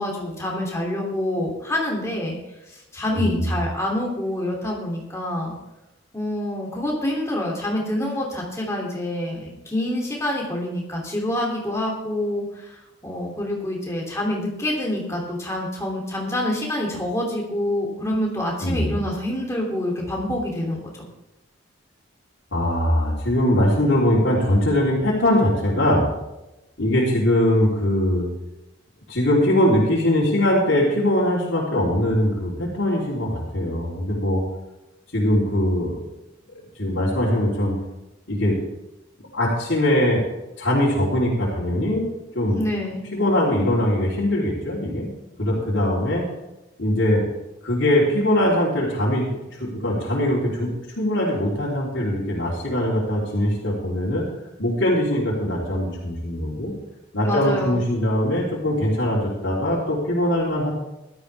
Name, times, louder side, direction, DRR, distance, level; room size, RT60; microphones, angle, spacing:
voice 1, 0.0-2.4 2.7-5.5 6.1-21.1 42.5-43.1 57.2-57.8, left 1 dB, 15° left, -2 dB, 2.9 m, -27 dB
voice 2, 3.2-3.5 18.6-19.0 22.5-26.1 26.8-28.3 29.1-34.4 35.1-36.0 36.8-37.8 38.3-38.6 39.3-40.2 40.6-42.1 42.3-42.6 43.1-45.1 45.4-46.2 46.8-47.2 47.6-50.7 51.0-54.3 54.6-56.7 57.1-60.7, left 1 dB, 65° left, -7 dB, 3.5 m, -21 dB
16.0 x 13.0 x 3.5 m, 0.94 s
head